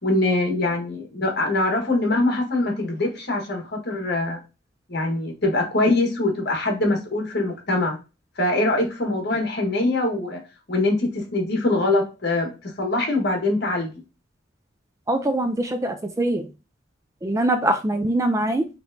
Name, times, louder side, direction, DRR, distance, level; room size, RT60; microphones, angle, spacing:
voice 1, 0.0-4.4 4.9-8.0 8.4-10.4 10.7-13.9, left 2 dB, 55° left, 2 dB, 1.4 m, -23 dB
voice 2, 15.1-16.5 17.2-18.7, right 1 dB, 15° right, 7 dB, 0.3 m, -23 dB
4.8 x 3.1 x 2.6 m, 0.29 s
head